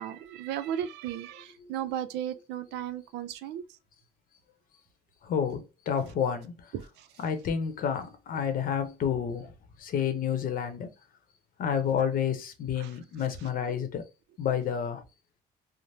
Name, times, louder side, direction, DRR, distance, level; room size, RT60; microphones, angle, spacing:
voice 1, 0.0-3.6 12.8-12.9, right 10 dB, 85° right, 0.4 m, -35 dB
voice 2, 5.2-6.7 7.2-9.5 9.8-10.9 11.6-14.0 14.4-15.0, left 8 dB, 55° left, 0.7 m, -30 dB
3.2 x 2.0 x 2.6 m
cardioid pair, 110°, 17 cm